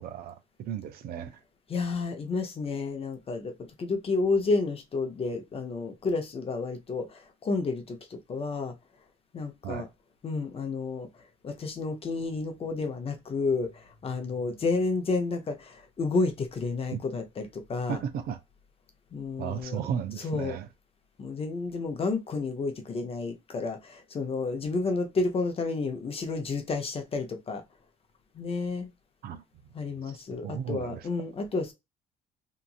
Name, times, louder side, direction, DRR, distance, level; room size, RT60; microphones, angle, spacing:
voice 1, 0.0-1.4 9.6-9.9 16.9-17.0 17.9-18.4 19.4-20.7 29.2-29.4 30.4-31.1, right 8 dB, 65° right, 0.6 m, -34 dB
voice 2, 1.7-3.5 3.8-8.7 9.3-9.9 10.2-11.1 11.4-18.0 19.1-19.8 20.2-20.6 21.2-27.6 28.3-28.9 29.7-31.7, left 3 dB, 35° left, 0.8 m, -31 dB
2.9 x 2.5 x 2.4 m
cardioid pair, 110°, 17 cm